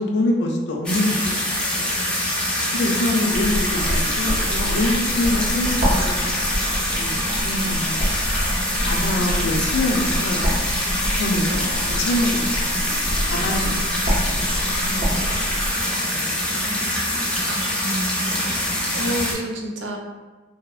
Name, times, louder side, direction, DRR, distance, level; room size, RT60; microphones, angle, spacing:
voice 1, 0.0-2.0 2.3-2.4 2.7-8.1 8.8-10.5 11.2-11.7 12.0-12.6 13.2-14.4 14.8-15.6 16.1-16.3, left 1 dB, 75° left, 1 dB, 0.4 m, -25 dB
sound 1, 0.8-19.3, left 1 dB, 5° left, 0.3 m, -24 dB
Writing, 3.3-15.7, equal, 40° right, 0.7 m, -27 dB
voice 2, 16.6-20.0, equal, 85° right, 0 dB, 0.5 m, -31 dB
2.7 x 2.0 x 2.3 m, 1.2 s
head